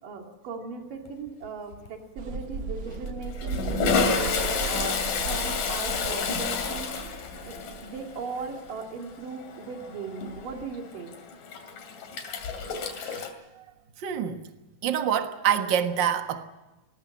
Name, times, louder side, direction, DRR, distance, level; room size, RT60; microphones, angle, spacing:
voice 1, 0.0-4.1 4.7-6.9 7.4-7.5 7.8-11.2, right 4 dB, 85° right, 4.2 m, -38 dB
Toilet flush, 1.1-1.5 1.7-1.9 2.8-13.3, left 5 dB, 80° left, 4.2 m, -30 dB
sound 1, 2.2-8.8, right 4 dB, 65° right, 1.0 m, -36 dB
voice 2, 12.8-13.3 14.0-14.4 14.8-16.4, right 9 dB, 45° right, 1.6 m, -26 dB
21.0 x 19.5 x 7.3 m
omnidirectional pair, 3.7 m